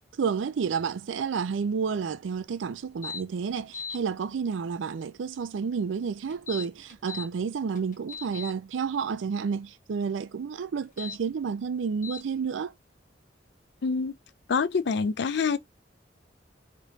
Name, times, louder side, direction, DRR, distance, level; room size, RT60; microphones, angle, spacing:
voice 1, 0.2-12.7, right 6 dB, 90° right, 0.4 m, -30 dB
sound 1, 3.0-3.2 3.6-4.0 6.3-7.3 7.8-8.5 10.8-11.2 12.0-12.2, left 6 dB, 45° left, 1.0 m, -38 dB
voice 2, 13.8-14.1 14.5-15.6, left 5 dB, 65° left, 0.4 m, -26 dB
3.3 x 3.0 x 2.7 m
head